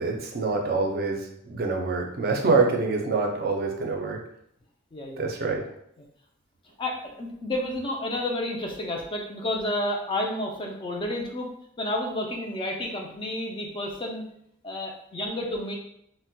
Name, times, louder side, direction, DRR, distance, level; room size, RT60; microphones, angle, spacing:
voice 1, 0.0-4.2 5.2-5.6, right 3 dB, 45° right, 2 dB, 0.4 m, -26 dB
voice 2, 4.9-5.2 6.8-11.5 11.8-14.2 14.6-15.8, left 1 dB, 25° left, 0 dB, 0.4 m, -30 dB
4.0 x 2.1 x 2.2 m, 0.73 s
head